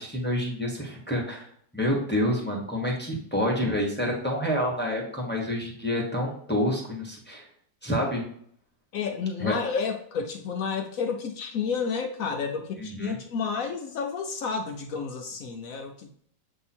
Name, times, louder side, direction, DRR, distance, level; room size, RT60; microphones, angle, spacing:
voice 1, 0.0-1.4 1.7-7.4 7.8-8.2 9.4-9.5 12.8-13.1, equal, 10° left, -2 dB, 0.9 m, -28 dB
voice 2, 8.9-16.1, left 5 dB, 70° left, 3 dB, 0.8 m, -31 dB
7.8 x 2.8 x 4.3 m, 0.62 s
omnidirectional pair, 2.0 m